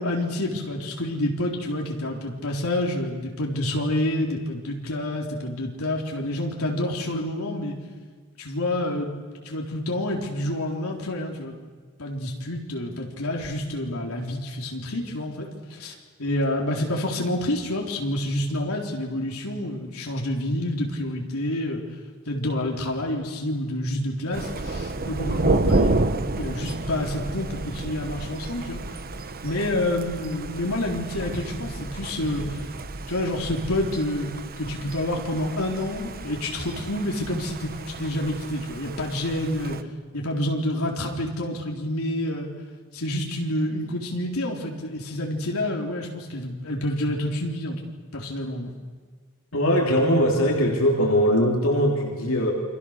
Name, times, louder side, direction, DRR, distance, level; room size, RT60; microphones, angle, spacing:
voice 1, 0.0-7.8 8.4-9.1 9.4-11.6 12.0-21.8 22.3-26.0 26.3-28.8 29.4-32.6 33.1-34.3 34.6-37.7 38.0-39.8 40.1-42.5 42.9-47.8 48.1-48.7, left 1 dB, 85° left, 0 dB, 4.1 m, -28 dB
Thunder, 24.3-39.8, right 2 dB, 45° right, 1.1 m, -30 dB
voice 2, 49.5-52.5, equal, 70° left, -1 dB, 3.4 m, -21 dB
29.0 x 25.0 x 6.7 m, 1.5 s
head